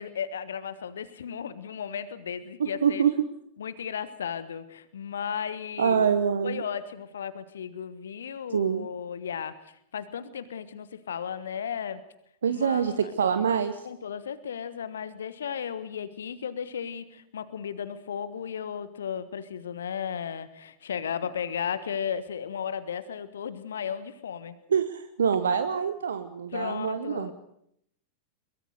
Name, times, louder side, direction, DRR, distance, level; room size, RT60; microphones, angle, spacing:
voice 1, 0.0-3.0 3.6-6.1 6.4-12.0 12.5-13.1 13.8-24.6 26.5-27.3, left 7 dB, 65° left, 14 dB, 1.4 m, -35 dB
voice 2, 2.6-3.1 5.8-6.6 8.5-8.9 12.4-13.9 24.7-27.3, right 7 dB, 70° right, 11 dB, 1.1 m, -25 dB
23.0 x 22.0 x 6.6 m, 0.72 s
figure-of-eight pair, 90°, 0 cm